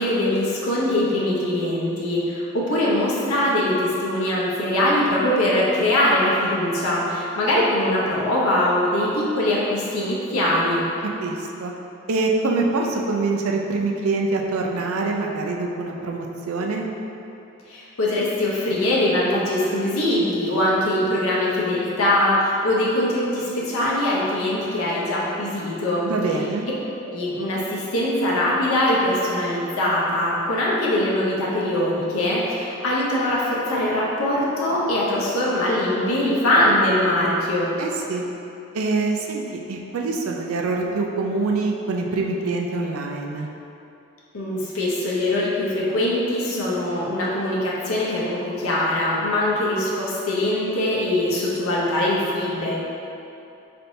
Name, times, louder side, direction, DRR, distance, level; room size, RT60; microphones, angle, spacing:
voice 1, 0.0-10.8 17.7-26.0 27.0-37.7 44.3-52.7, left 1 dB, 85° left, -6 dB, 0.7 m, -22 dB
voice 2, 11.2-11.7 12.1-16.9 26.0-26.7 37.8-38.2 38.7-43.5, right 3 dB, 85° right, 1 dB, 0.4 m, -25 dB
4.2 x 3.3 x 2.6 m, 2.8 s
head